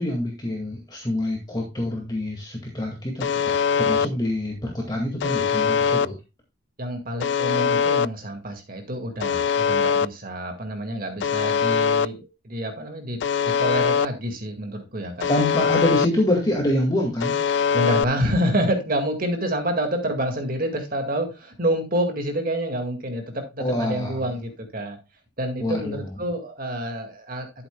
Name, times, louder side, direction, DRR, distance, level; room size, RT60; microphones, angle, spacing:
voice 1, 0.0-6.2 15.3-17.4 23.6-24.3 25.6-26.1, left 1 dB, 20° left, 0 dB, 2.0 m, -26 dB
Alarm, 3.2-4.1 5.2-6.1 7.2-8.1 9.2-10.1 11.2-12.1 13.2-14.1 15.2-16.1 17.2-18.0, left 6 dB, 60° left, 0.3 m, -22 dB
voice 2, 6.8-15.3 17.7-25.0 25.4-27.7, equal, 45° right, 5 dB, 2.0 m, -28 dB
12.5 x 7.9 x 2.3 m, 0.26 s
head